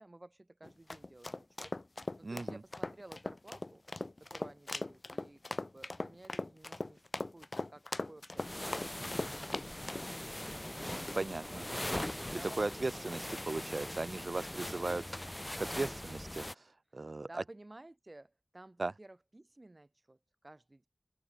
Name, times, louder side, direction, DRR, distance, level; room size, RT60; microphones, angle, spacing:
voice 1, 0.0-1.7 2.2-3.8 4.2-7.0 7.3-9.4 9.8-10.5 11.0-13.5 14.5-15.3 17.3-20.9, right 2 dB, 45° right, 4.2 m, -55 dB
sound 1, 0.6-10.1, left 2 dB, 60° left, 0.4 m, -40 dB
voice 2, 2.2-2.6 10.8-11.9 12.6-15.0 15.6-16.5 16.9-17.3 18.8-18.9, right 2 dB, 75° right, 1.0 m, -37 dB
sound 2, 8.4-16.5, left 1 dB, 20° left, 0.9 m, -41 dB
open air
wide cardioid pair, 40°, 0 cm